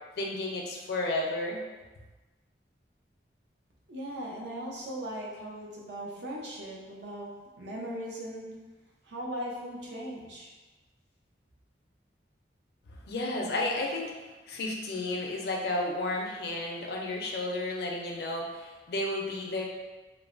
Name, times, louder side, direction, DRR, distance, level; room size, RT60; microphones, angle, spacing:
voice 1, 0.2-1.6 13.1-14.1 14.5-19.6, left 2 dB, 60° left, -1 dB, 0.4 m, -32 dB
voice 2, 3.9-7.3 7.6-8.5 9.0-10.5, equal, 75° right, -3 dB, 0.6 m, -38 dB
3.1 x 2.1 x 2.4 m, 1.2 s
head